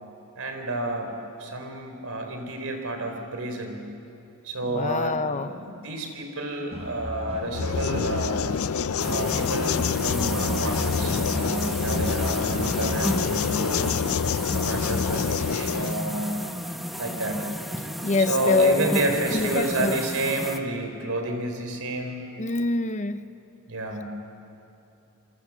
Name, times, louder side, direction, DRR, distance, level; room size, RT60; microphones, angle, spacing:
voice 1, 0.4-1.1 1.4-3.8 4.4-8.5 9.1-13.9 14.5-16.3 17.0-17.5 18.3-22.2 23.7-24.1, right 1 dB, 70° right, 4 dB, 4.1 m, -30 dB
voice 2, 4.7-5.5 18.0-18.8 19.3-20.0 22.4-23.2, left 3 dB, 35° left, 11 dB, 0.8 m, -24 dB
sound 1, 6.7-13.7, equal, 30° right, 3.3 m, -36 dB
sound 2, 7.5-16.0, left 6 dB, 65° left, 0.5 m, -27 dB
sound 3, 9.0-20.6, equal, ahead, 1.3 m, -32 dB
26.5 x 26.0 x 7.4 m, 2.8 s
head